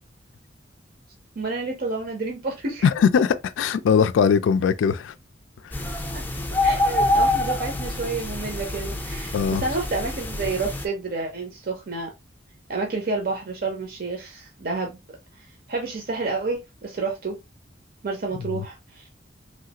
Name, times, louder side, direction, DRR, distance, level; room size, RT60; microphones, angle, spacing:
voice 1, 1.4-2.9 6.1-6.2 6.6-12.1 12.7-15.0 15.4-17.3 18.0-19.1, right 3 dB, 50° right, 0.6 m, -29 dB
voice 2, 2.8-5.1 5.6-5.7 9.3-9.6 18.5-18.6, left 6 dB, 85° left, 0.3 m, -20 dB
sound 1, 5.7-10.9, left 2 dB, 10° left, 0.5 m, -26 dB
3.1 x 2.4 x 2.8 m
head